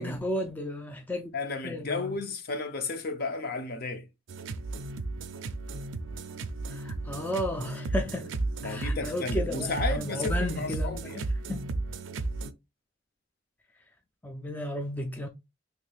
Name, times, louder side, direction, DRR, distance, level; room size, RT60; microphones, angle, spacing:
voice 1, 0.0-1.3 1.6-2.2 6.7-8.3 8.6-11.7 14.2-15.3, left 1 dB, 10° left, 0.3 m, -34 dB
voice 2, 1.3-4.1 8.6-11.2, left 3 dB, 50° left, 0.6 m, -33 dB
sound 1, 4.3-12.5, right 2 dB, 75° right, 0.4 m, -33 dB
3.3 x 3.2 x 2.3 m
head